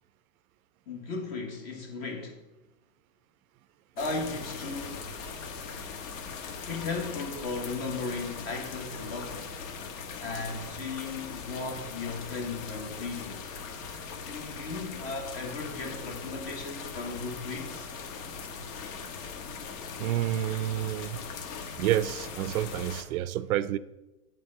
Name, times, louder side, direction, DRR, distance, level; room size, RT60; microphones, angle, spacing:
voice 1, 0.9-2.4 4.0-5.0 6.7-9.6 10.2-13.4 14.2-17.9, left 3 dB, 35° left, 1 dB, 1.3 m, -36 dB
sound 1, 4.0-23.0, left 5 dB, 60° left, 1.3 m, -40 dB
voice 2, 20.0-21.2 21.8-23.8, right 13 dB, 65° right, 17 dB, 0.5 m, -29 dB
8.2 x 4.4 x 6.5 m, 1.0 s
supercardioid pair, 140°, 45 cm